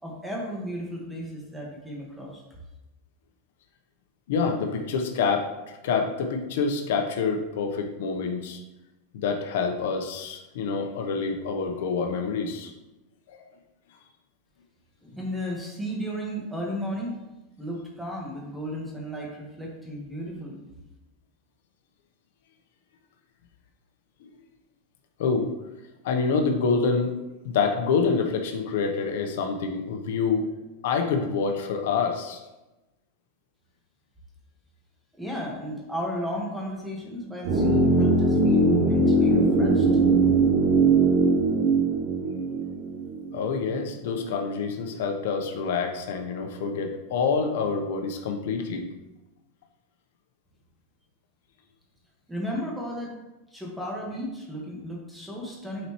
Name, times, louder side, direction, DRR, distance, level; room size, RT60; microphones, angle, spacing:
voice 1, 0.0-2.4 15.0-17.2 17.6-20.6 35.2-39.9 52.3-53.1 53.5-55.9, equal, 5° right, -2 dB, 1.5 m, -34 dB
voice 2, 4.3-5.5 5.8-8.6 9.2-12.7 13.3-13.4 24.2-24.3 25.2-25.5 26.0-27.1 27.4-30.5 30.8-32.4 43.3-48.9, left 5 dB, 75° left, 4 dB, 0.9 m, -27 dB
sound 1, 37.4-43.5 43.7-43.8, right 2 dB, 85° right, 2.0 m, -21 dB
9.0 x 4.2 x 3.1 m, 1.0 s
supercardioid pair, 150°, 0 cm